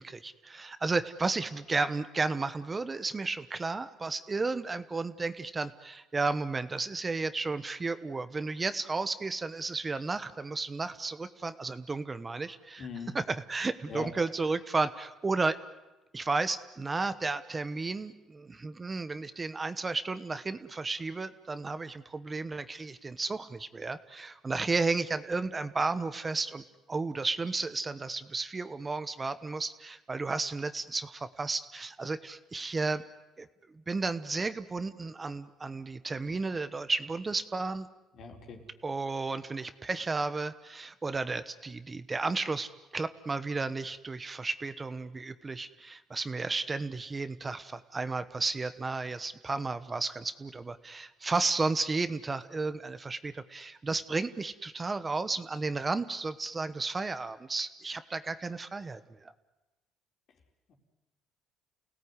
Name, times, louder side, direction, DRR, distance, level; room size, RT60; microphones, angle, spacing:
voice 1, 0.0-12.9 13.1-15.5 16.1-26.6 26.9-33.0 33.4-33.5 33.9-37.9 38.8-59.3, right 3 dB, 25° right, 12 dB, 1.2 m, -33 dB
voice 2, 12.8-13.1 13.9-14.1 38.1-38.6 60.7-60.8, left 5 dB, 60° left, 2 dB, 4.5 m, -41 dB
29.5 x 17.5 x 9.8 m, 1.0 s
cardioid pair, 95°, 0 cm